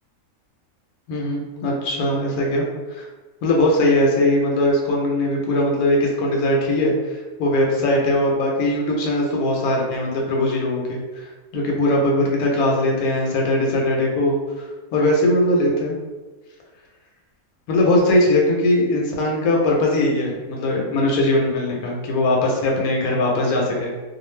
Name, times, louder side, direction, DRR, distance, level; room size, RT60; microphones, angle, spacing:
voice 1, 1.1-3.1 3.4-6.9 7.4-11.0 11.5-14.4 14.9-16.0 17.7-23.9, left 1 dB, 90° left, -1 dB, 1.1 m, -20 dB
2.4 x 2.2 x 3.1 m, 1.2 s
omnidirectional pair, 1.5 m